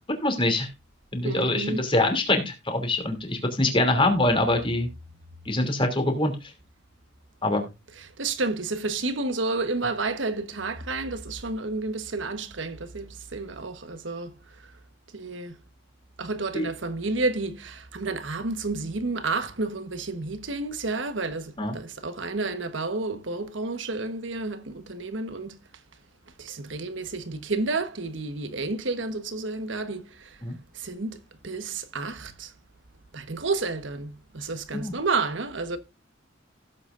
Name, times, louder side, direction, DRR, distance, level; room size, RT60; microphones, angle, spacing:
voice 1, 0.2-0.7 1.1-4.9 5.5-6.3 7.4-7.6 16.5-16.7 21.6-21.7 30.4-30.6 34.7-34.9, left 2 dB, 25° left, 2.9 m, -24 dB
voice 2, 1.2-1.9 8.2-14.3 15.1-15.5 16.2-25.6 26.4-30.4 30.7-31.2 31.4-32.5 33.1-35.8, right 3 dB, 65° right, 1.2 m, -30 dB
16.5 x 8.0 x 2.6 m
head